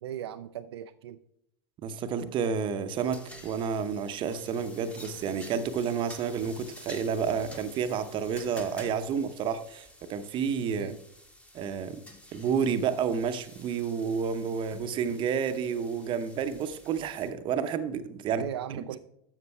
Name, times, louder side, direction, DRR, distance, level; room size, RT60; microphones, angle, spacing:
voice 1, 0.0-1.2 10.7-11.0 18.4-19.0, right 10 dB, 70° right, 9 dB, 0.4 m, -38 dB
voice 2, 1.8-10.9 11.5-12.0 12.3-18.4, right 7 dB, 35° right, 10 dB, 0.8 m, -30 dB
sound 1, 2.9-17.3, left 1 dB, 10° left, 1.3 m, -51 dB
13.0 x 7.5 x 2.3 m, 0.78 s
figure-of-eight pair, 85°, 14 cm